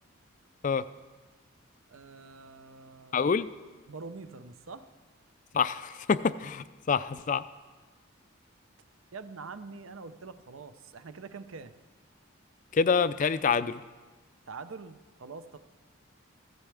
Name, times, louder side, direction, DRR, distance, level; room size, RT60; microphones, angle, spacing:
voice 1, 1.9-3.3 3.9-4.9 9.1-11.7 14.5-15.6, right 4 dB, 75° right, 11 dB, 0.6 m, -45 dB
voice 2, 3.1-3.5 5.5-7.4 12.7-13.8, left 5 dB, 35° left, 15 dB, 0.3 m, -26 dB
15.5 x 14.5 x 3.4 m, 1.3 s
head